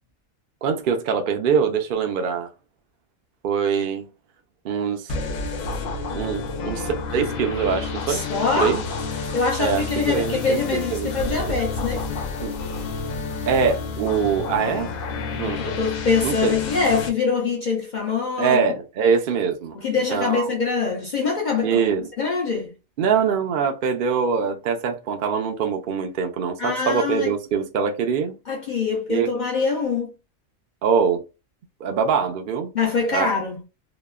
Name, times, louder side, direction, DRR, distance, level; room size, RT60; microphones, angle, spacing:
voice 1, 0.6-2.5 3.4-4.1 4.6-5.1 6.1-8.3 8.6-8.8 9.6-11.1 11.5-11.6 12.4-12.5 13.5-14.9 15.3-15.7 16.2-16.6 18.4-20.5 21.6-22.1 23.0-28.3 29.1-29.3 30.8-31.2 31.8-32.7 33.1-33.3, right 6 dB, 60° right, 0.5 m, -23 dB
sound 1, 5.1-17.1, left 4 dB, 75° left, 1.1 m, -30 dB
voice 2, 8.1-8.8 9.3-12.0 15.5-18.6 19.7-21.8 22.2-22.7 26.6-27.3 28.5-30.1 32.7-33.6, left 4 dB, 55° left, 0.5 m, -24 dB
3.0 x 2.1 x 2.3 m
omnidirectional pair, 1.4 m